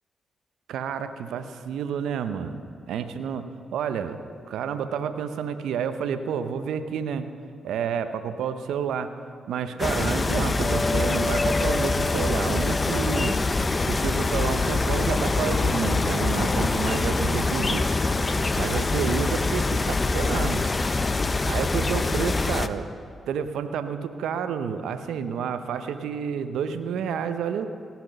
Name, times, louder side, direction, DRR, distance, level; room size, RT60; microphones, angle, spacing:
voice 1, 0.7-2.6 2.9-7.3 7.6-9.1 9.5-13.4 13.9-18.0 18.6-20.6 21.4-22.9 23.3-27.7, right 7 dB, 80° right, 10 dB, 0.6 m, -30 dB
sound 1, 9.8-22.7, left 3 dB, 35° left, 0.6 m, -24 dB
17.5 x 6.0 x 6.7 m, 2.4 s
hypercardioid pair, 45°, 0 cm